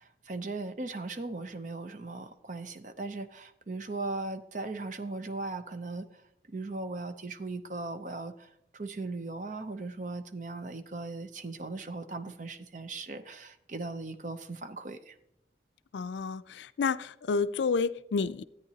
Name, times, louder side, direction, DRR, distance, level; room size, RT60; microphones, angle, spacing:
voice 1, 0.0-6.1 6.5-15.1, right 3 dB, 45° right, 0.7 m, -38 dB
voice 2, 15.9-18.4, left 5 dB, 85° left, 0.4 m, -30 dB
13.5 x 9.2 x 2.8 m
head